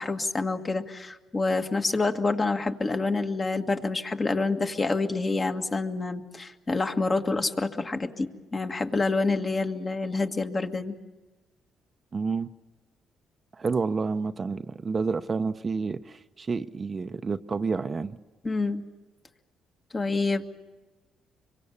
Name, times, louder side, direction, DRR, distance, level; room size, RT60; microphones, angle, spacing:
voice 1, 0.0-10.9 18.4-18.8 19.9-20.6, left 3 dB, 30° left, 5 dB, 1.8 m, -27 dB
voice 2, 12.1-12.5 13.5-18.2, right 4 dB, 35° right, 9 dB, 0.8 m, -29 dB
25.5 x 23.5 x 7.1 m, 1.2 s
supercardioid pair, 75°, 0 cm